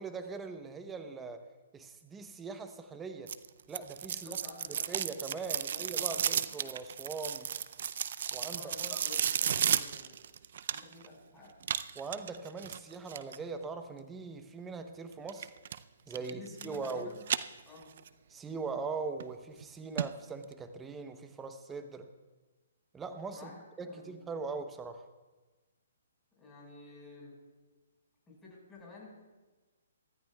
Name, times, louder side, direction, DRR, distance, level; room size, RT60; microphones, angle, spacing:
voice 1, 0.0-1.5 1.7-3.3 3.7-4.4 4.7-7.5 8.3-9.0 11.9-15.5 16.1-17.1 18.3-22.1 22.9-23.5 23.8-25.1, right 4 dB, 10° right, 7 dB, 0.9 m, -41 dB
sound 1, 3.3-11.1 11.6-13.4 15.3-15.8 16.1-16.9 17.2-18.1 18.5-18.6 19.2-19.3 19.6-19.7 20.0-20.1 20.4-20.5, right 8 dB, 60° right, 0.5 m, -33 dB
voice 2, 4.1-6.5 8.5-10.2 10.7-11.7 16.1-17.2 17.7-17.9 23.3-24.2 26.4-27.4 28.3-29.1, left 3 dB, 10° left, -5 dB, 5.2 m, -51 dB
24.0 x 13.5 x 2.3 m, 1.2 s
hypercardioid pair, 150°, 0 cm